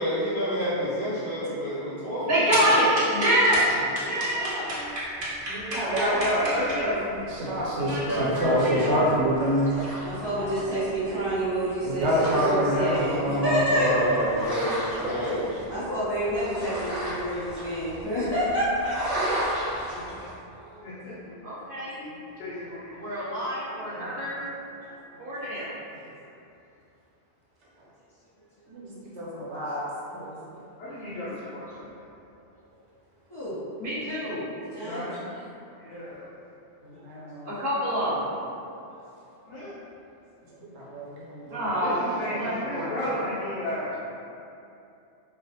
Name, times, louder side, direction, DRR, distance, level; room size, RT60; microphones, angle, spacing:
voice 1, 0.0-2.6 8.1-9.1 13.6-15.6, equal, 65° left, -12 dB, 0.7 m, -28 dB
voice 2, 2.3-3.6 4.0-4.7 7.9-8.9 21.4-22.0 22.9-24.4 25.2-25.7 33.8-34.4 37.4-38.3 41.5-42.9, right 1 dB, 55° right, -9 dB, 0.8 m, -26 dB
voice 3, 4.1-4.9 5.5-6.2 6.9-9.7 10.4-10.5 11.8-14.1 15.0-15.3 20.6-20.8 25.1-25.5 28.7-29.8 30.1-30.3 36.8-37.5 40.6-41.7 42.3-42.8, equal, 80° right, -7 dB, 1.0 m, -28 dB
sound 1, 4.9-20.3, right 1 dB, 5° left, 0.9 m, -36 dB
voice 4, 5.9-7.0 19.7-20.1 20.8-21.3 22.0-22.9 23.9-24.2 30.8-31.9 34.8-35.2 35.8-36.3 39.5-39.7 41.8-43.9, left 1 dB, 90° left, -10 dB, 0.9 m, -32 dB
voice 5, 10.0-14.2 15.7-19.0 33.3-33.6 34.6-35.1, equal, 40° left, -13 dB, 0.3 m, -28 dB
2.3 x 2.1 x 2.7 m, 2.7 s
omnidirectional pair, 1.2 m